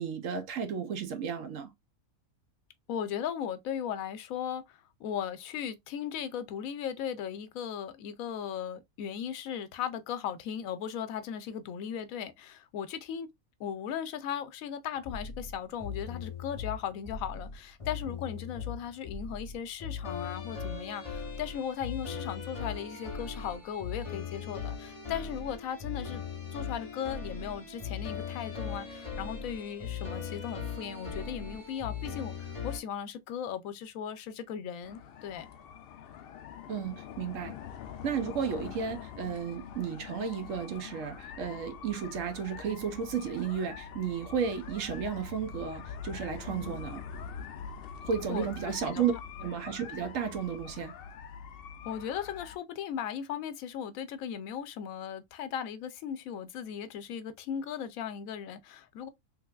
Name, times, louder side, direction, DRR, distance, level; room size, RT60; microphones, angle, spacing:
voice 1, 0.0-1.7 36.7-37.6 38.0-47.0 48.0-49.1 49.4-50.9, right 7 dB, 70° right, 1.1 m, -33 dB
voice 2, 2.9-13.3 13.6-26.2 26.5-35.5 46.5-46.8 48.3-48.5 48.9-49.0 51.8-59.1, left 8 dB, 85° left, 1.0 m, -37 dB
sound 1, 15.0-32.8, left 6 dB, 30° left, 0.8 m, -39 dB
sound 2, 34.8-52.6, left 7 dB, 65° left, 0.6 m, -44 dB
3.3 x 3.1 x 2.3 m
omnidirectional pair, 1.4 m